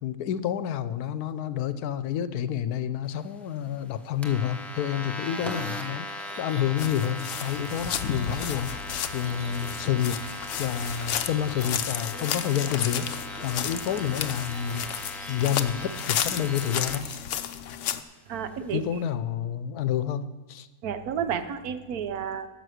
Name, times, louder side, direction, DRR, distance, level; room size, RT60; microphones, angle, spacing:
voice 1, 0.0-10.2 10.6-13.1 13.4-14.8 15.3-17.1 18.7-20.7, left 9 dB, 80° left, 13 dB, 1.1 m, -29 dB
sound 1, 4.2-17.0, left 1 dB, ahead, 0.6 m, -39 dB
sound 2, 5.4-17.2 17.5-17.6, equal, 50° right, 3.6 m, -45 dB
sound 3, 6.8-18.0, left 9 dB, 65° left, 0.8 m, -33 dB
voice 2, 18.3-18.8 20.8-22.5, right 8 dB, 75° right, 10 dB, 1.3 m, -31 dB
12.5 x 6.7 x 6.4 m, 1.2 s
omnidirectional pair, 1.6 m